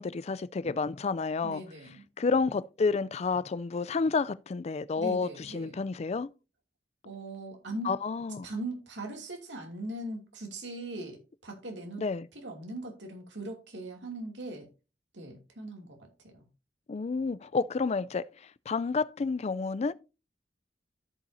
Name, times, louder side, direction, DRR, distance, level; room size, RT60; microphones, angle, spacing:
voice 1, 0.0-1.6 2.2-6.3 7.8-8.5 12.0-12.3 16.9-18.3 18.7-19.9, left 4 dB, 35° left, 0.4 m, -30 dB
voice 2, 1.4-2.1 4.9-5.8 7.0-7.9 8.4-12.0 12.3-14.7 15.1-16.4, right 2 dB, 80° right, 2.6 m, -40 dB
14.0 x 5.5 x 2.7 m
head